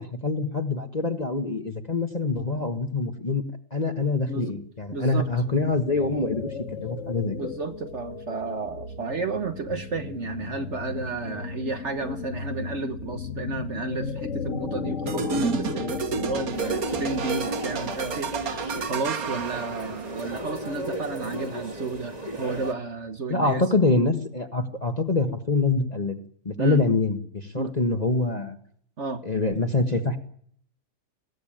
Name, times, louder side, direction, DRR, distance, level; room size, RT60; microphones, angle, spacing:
voice 1, 0.0-3.4 3.7-7.4 23.3-26.2 26.4-28.6 29.2-30.2, left 3 dB, 30° left, 4 dB, 1.6 m, -25 dB
sound 1, 4.8-19.0, left 5 dB, 55° left, 2.0 m, -35 dB
voice 2, 4.9-5.3 7.3-23.6 26.6-26.8 27.5-27.7 29.0-29.2, right 3 dB, 50° right, 8 dB, 1.4 m, -32 dB
sound 2, 15.1-20.2, right 6 dB, 75° right, 1.6 m, -31 dB
sound 3, 16.5-22.7, right 1 dB, 25° right, 2.2 m, -35 dB
21.0 x 16.5 x 8.9 m, 0.63 s
omnidirectional pair, 1.6 m